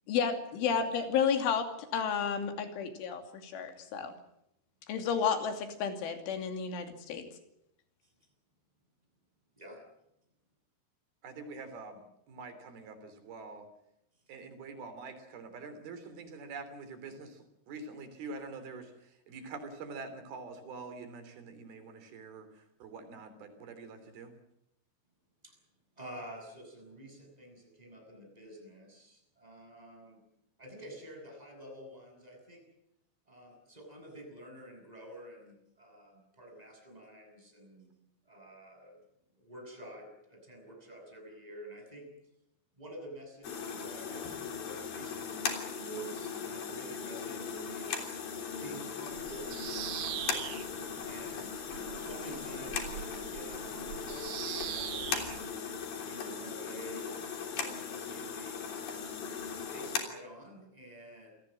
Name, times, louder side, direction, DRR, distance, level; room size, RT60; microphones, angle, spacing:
voice 1, 0.1-4.1 4.9-7.3, left 6 dB, 70° left, 6 dB, 5.0 m, -32 dB
voice 2, 11.2-12.0 12.3-13.7 14.3-24.3, right 4 dB, 50° right, 9 dB, 4.9 m, -45 dB
voice 3, 26.0-30.2 30.6-32.6 33.3-37.9 38.2-39.0 39.4-42.1 42.8-48.1 48.6-50.4 51.1-55.1 56.0-58.6 59.7-61.3, right 1 dB, 5° right, 2 dB, 7.4 m, -49 dB
sound 1, 43.4-60.0, left 6 dB, 50° left, 4.6 m, -38 dB
Bird vocalization bird call bird song, 49.1-55.5, right 13 dB, 75° right, 2.4 m, -42 dB
27.5 x 19.0 x 7.6 m, 0.81 s
omnidirectional pair, 5.9 m